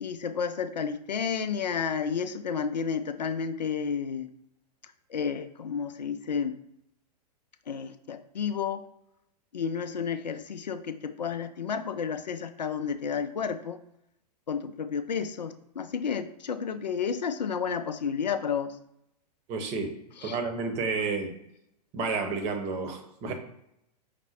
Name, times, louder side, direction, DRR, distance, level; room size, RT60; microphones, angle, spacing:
voice 1, 0.0-4.3 5.1-6.5 7.7-8.9 9.5-13.8 14.5-18.8 20.2-20.4, left 6 dB, 80° left, 10 dB, 0.4 m, -31 dB
voice 2, 19.5-19.9 20.2-21.3 21.9-23.3, right 4 dB, 30° right, 4 dB, 0.8 m, -30 dB
5.0 x 2.1 x 4.2 m, 0.80 s
figure-of-eight pair, 105°, 21 cm